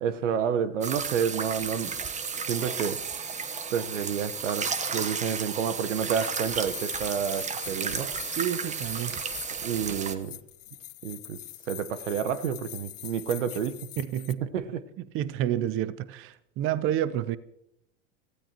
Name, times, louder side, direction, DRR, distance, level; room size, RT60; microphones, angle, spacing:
voice 1, 0.0-1.9 2.5-3.0 3.7-8.1 9.6-10.4 11.0-11.4 11.7-13.9 14.5-14.8, right 7 dB, 75° right, 1.1 m, -29 dB
sound 1, 0.8-10.1, right 6 dB, 20° right, 1.1 m, -33 dB
sound 2, 6.2-9.6 10.2-14.3, left 14 dB, 75° left, 0.8 m, -43 dB
Walk footsteps, 7.6-10.8, right 5 dB, 90° right, 1.5 m, -52 dB
voice 2, 8.4-9.2 14.0-14.4 15.1-17.4, right 11 dB, 35° right, 0.6 m, -29 dB
27.0 x 16.0 x 2.9 m
hypercardioid pair, 90°, 37 cm